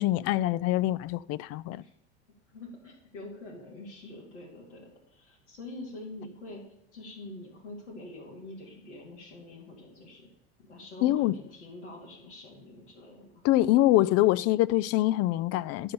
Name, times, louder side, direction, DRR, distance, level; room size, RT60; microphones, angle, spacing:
voice 1, 0.0-1.8 11.0-11.3 13.4-15.9, left 15 dB, 45° left, 0.4 m, -24 dB
voice 2, 2.5-6.6 6.9-10.3 10.6-13.3, left 2 dB, 90° left, 2.6 m, -45 dB
11.5 x 5.1 x 6.7 m
hypercardioid pair, 75°, 34 cm